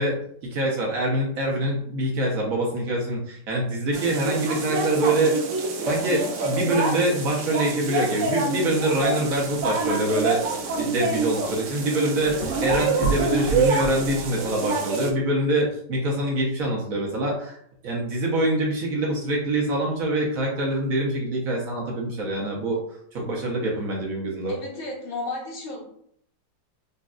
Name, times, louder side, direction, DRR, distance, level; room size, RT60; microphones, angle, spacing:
voice 1, 0.0-5.4 5.8-10.4 10.8-17.6 17.8-22.8 23.1-24.5, right 1 dB, 60° right, -2 dB, 1.0 m, -25 dB
sound 1, 3.9-15.1, right 3 dB, 75° right, 0.7 m, -27 dB
sound 2, 9.0-14.7, right 4 dB, 70° left, 1.3 m, -34 dB
voice 2, 24.5-25.8, left 2 dB, 30° left, -3 dB, 1.1 m, -33 dB
4.0 x 3.2 x 2.3 m, 0.67 s
omnidirectional pair, 2.0 m